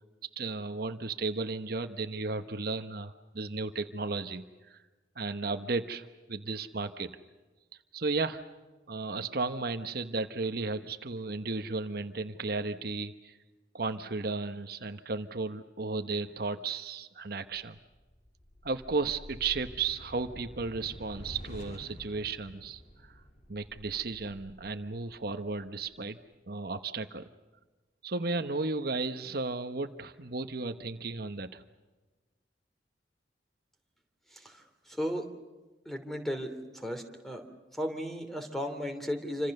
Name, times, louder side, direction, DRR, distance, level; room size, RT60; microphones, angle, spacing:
voice 1, 0.4-4.8 5.2-7.1 7.9-8.4 8.9-13.4 13.7-17.8 18.6-22.8 23.5-26.2 26.5-27.2 28.0-31.6, right 3 dB, 55° right, 8 dB, 1.1 m, -34 dB
sound 1, 17.5-26.0, equal, 40° left, 3.5 m, -49 dB
voice 2, 35.8-36.5 36.7-37.4 37.7-39.5, equal, ahead, 6 dB, 3.0 m, -34 dB
28.0 x 26.0 x 6.7 m, 1.2 s
head